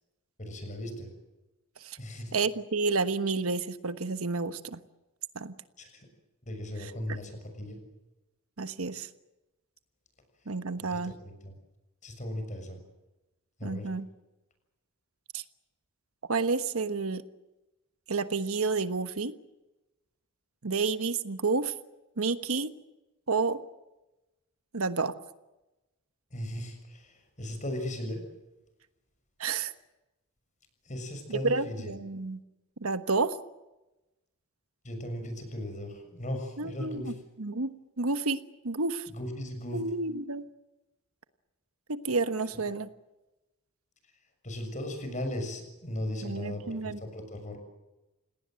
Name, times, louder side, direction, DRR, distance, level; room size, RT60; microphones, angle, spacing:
voice 1, 0.4-1.1 2.0-2.4 5.8-6.1 6.4-7.8 10.8-11.5 12.0-12.8 13.6-13.9 26.3-28.2 30.8-31.9 34.8-37.1 39.1-39.8 42.5-42.6 44.4-47.6, left 1 dB, 35° left, 6 dB, 6.7 m, -37 dB
voice 2, 2.3-4.8 5.3-5.5 8.6-9.1 10.5-11.1 13.6-14.1 15.3-15.4 16.3-17.2 18.1-19.3 20.6-21.7 22.2-22.7 23.3-23.6 24.7-25.1 29.4-29.7 31.3-32.4 32.8-33.4 36.6-37.1 37.4-37.7 38.0-38.4 38.6-39.1 39.7-40.5 41.9-42.9 46.2-47.0, right 4 dB, 75° right, 11 dB, 1.3 m, -30 dB
28.5 x 19.0 x 7.8 m, 1.0 s
head